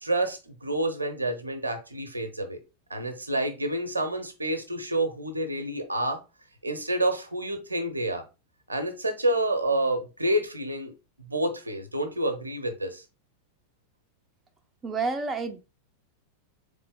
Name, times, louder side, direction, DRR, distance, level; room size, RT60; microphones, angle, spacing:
voice 1, 0.0-2.6 2.9-6.2 6.6-8.2 8.7-10.9 11.2-13.0, right 1 dB, 80° right, 8 dB, 0.8 m, -28 dB
voice 2, 14.8-15.6, right 4 dB, 20° right, 6 dB, 0.5 m, -29 dB
3.9 x 3.3 x 3.8 m, 0.29 s
figure-of-eight pair, 90°, 0 cm